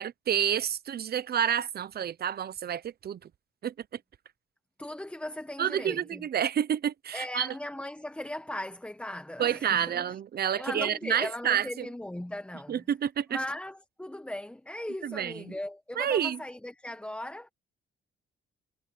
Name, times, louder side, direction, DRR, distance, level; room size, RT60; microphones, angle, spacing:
voice 1, 0.0-3.2 3.6-3.7 5.6-7.5 9.4-11.9 12.7-13.4 15.0-15.3 16.0-16.4, right 9 dB, 50° right, 0.9 m, -29 dB
voice 2, 4.8-6.3 7.1-10.2 10.5-12.8 13.3-17.5, left 1 dB, 5° left, 1.2 m, -38 dB
cardioid pair, 90°, 20 cm